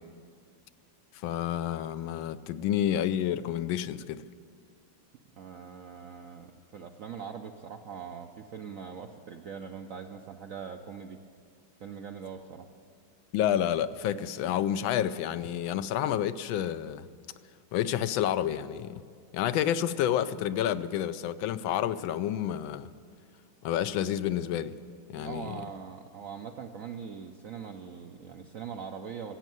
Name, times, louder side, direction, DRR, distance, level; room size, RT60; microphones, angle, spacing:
voice 1, 1.2-4.2 13.3-17.1 17.7-19.0 19.3-22.9 23.6-24.7 25.1-25.6, left 10 dB, 80° left, 1.3 m, -29 dB
voice 2, 5.3-11.2 11.8-12.7 25.1-29.4, right 7 dB, 70° right, 0.8 m, -42 dB
16.0 x 8.2 x 9.3 m
omnidirectional pair, 2.1 m